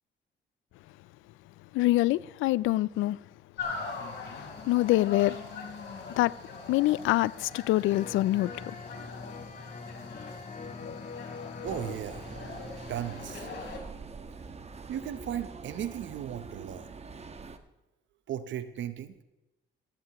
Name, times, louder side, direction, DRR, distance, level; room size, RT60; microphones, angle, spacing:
voice 1, 1.7-3.2 4.3-5.4 6.2-6.3 6.7-8.5, left 17 dB, 90° left, 0.4 m, -25 dB
sound 1, 3.6-13.8, left 4 dB, 60° left, 4.2 m, -42 dB
sound 2, 7.9-13.5 13.7-13.8, left 4 dB, 40° left, 1.5 m, -44 dB
sound 3, 11.6-17.6, right 4 dB, 30° right, 1.3 m, -44 dB
voice 2, 11.6-12.2 12.9-13.5 14.9-16.9 18.3-19.1, right 10 dB, 70° right, 0.9 m, -36 dB
17.0 x 15.0 x 3.0 m
cardioid pair, 90°, 20 cm